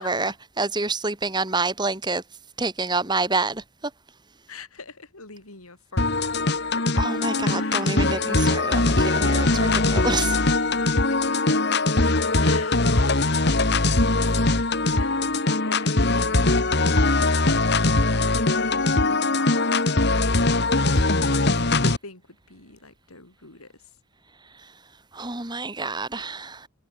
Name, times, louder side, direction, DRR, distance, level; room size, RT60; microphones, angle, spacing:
voice 1, 0.0-2.2 2.6-3.6 7.0-10.4 24.6-24.7 25.1-26.7, right 3 dB, 20° right, 2.3 m, -28 dB
voice 2, 4.5-7.0 7.4-8.2 10.5-11.6 12.2-15.2 15.6-19.7 20.1-23.7, left 3 dB, 85° left, 5.3 m, -44 dB
sound 1, 6.0-22.0, left 2 dB, 50° left, 1.9 m, -21 dB
head